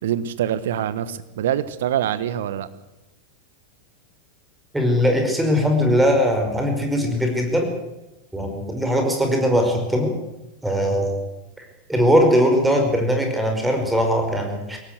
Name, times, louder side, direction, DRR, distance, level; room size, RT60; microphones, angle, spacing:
voice 1, 0.0-2.7, right 10 dB, 55° right, 15 dB, 1.3 m, -24 dB
voice 2, 4.7-7.7 8.3-10.1 10.6-11.2 11.6-14.8, equal, 5° right, 3 dB, 5.4 m, -20 dB
21.5 x 17.0 x 8.3 m, 0.98 s
figure-of-eight pair, 90°, 0 cm